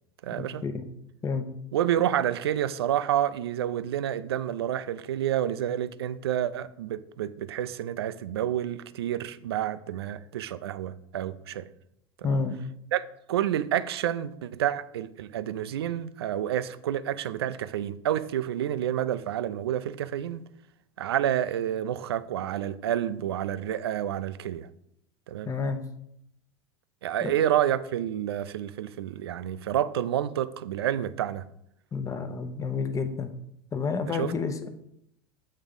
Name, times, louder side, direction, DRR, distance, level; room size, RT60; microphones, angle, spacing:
voice 1, 0.2-0.6 1.7-11.7 12.3-12.4 12.9-13.0 13.3-20.4 21.0-24.7 25.3-25.6 27.0-31.5 34.1-34.3, right 11 dB, 80° right, 0.4 m, -29 dB
voice 2, 12.2-12.6 25.4-25.8 27.2-27.3 31.9-33.3 33.7-34.7, left 5 dB, 25° left, 0.8 m, -29 dB
7.4 x 3.7 x 5.3 m
hypercardioid pair, 85°, 13 cm